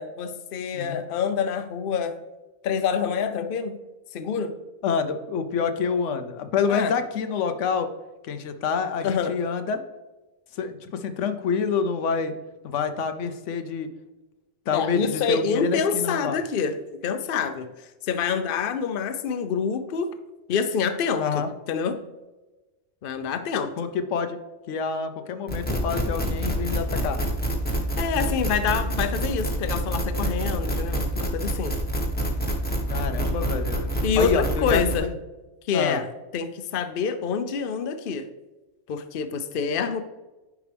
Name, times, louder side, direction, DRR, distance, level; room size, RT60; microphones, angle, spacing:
voice 1, 0.0-2.1 2.6-3.8 4.1-4.6 6.7-6.9 9.0-9.3 14.7-16.8 17.0-17.7 18.0-20.1 20.5-22.0 23.0-23.7 28.0-31.7 34.0-35.1 35.7-36.1 36.3-38.3 38.9-40.0, left 6 dB, 55° left, 9 dB, 0.8 m, -27 dB
voice 2, 4.8-7.9 8.2-9.8 10.5-12.3 12.6-13.9 14.7-16.4 21.2-21.5 23.8-24.4 24.7-27.2 32.9-33.9 34.2-35.2 35.7-36.0, left 6 dB, 90° left, 9 dB, 1.0 m, -27 dB
sound 1, 25.5-35.0, right 1 dB, 10° left, 1.1 m, -27 dB
10.0 x 4.7 x 3.3 m, 1.1 s
omnidirectional pair, 1.2 m